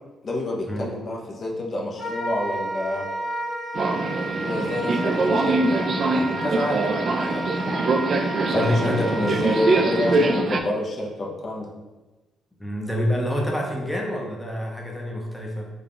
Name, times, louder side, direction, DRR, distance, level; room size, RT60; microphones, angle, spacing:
voice 1, 0.2-3.1 4.4-7.7 8.5-11.7, left 1 dB, 45° left, -1 dB, 0.7 m, -28 dB
Wind instrument woodwind instrument, 2.0-10.3, right 1 dB, 30° left, 1.3 m, -31 dB
Subway metro underground, 3.8-10.6, right 3 dB, 55° right, 0.3 m, -23 dB
voice 2, 8.5-9.1 12.6-15.7, left 1 dB, 5° left, -1 dB, 0.6 m, -27 dB
3.5 x 2.3 x 3.8 m, 1.1 s
cardioid pair, 90°, 0 cm